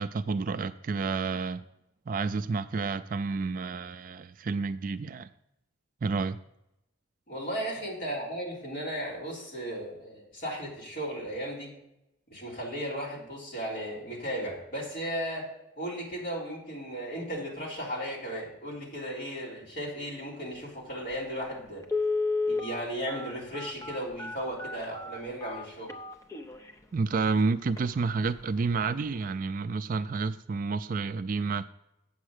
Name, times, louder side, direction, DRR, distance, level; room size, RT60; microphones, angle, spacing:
voice 1, 0.0-1.6 2.1-5.3 6.0-6.4 26.9-31.7, right 4 dB, 40° right, 0.3 m, -30 dB
voice 2, 7.3-11.7 12.3-15.5 15.8-21.9 22.5-26.0, equal, 45° left, 3.6 m, -35 dB
Telephone, 21.1-21.2 21.8-26.7 27.2-27.3 27.7-27.9 28.2-28.5 28.9-29.0, left 3 dB, 15° left, 0.7 m, -32 dB
8.6 x 6.2 x 6.5 m
head